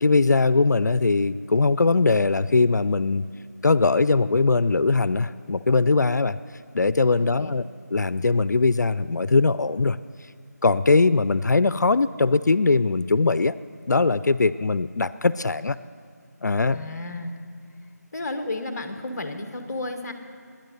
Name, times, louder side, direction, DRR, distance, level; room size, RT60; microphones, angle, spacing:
voice 1, 0.0-3.2 3.6-6.4 6.7-7.7 7.9-10.0 10.6-13.6 13.9-15.8 16.4-16.8, left 3 dB, 75° left, 15 dB, 0.4 m, -21 dB
voice 2, 16.7-17.3 18.1-20.1, left 2 dB, 10° left, 5 dB, 0.9 m, -32 dB
18.5 x 10.5 x 6.7 m, 2.1 s
figure-of-eight pair, 175°, 9 cm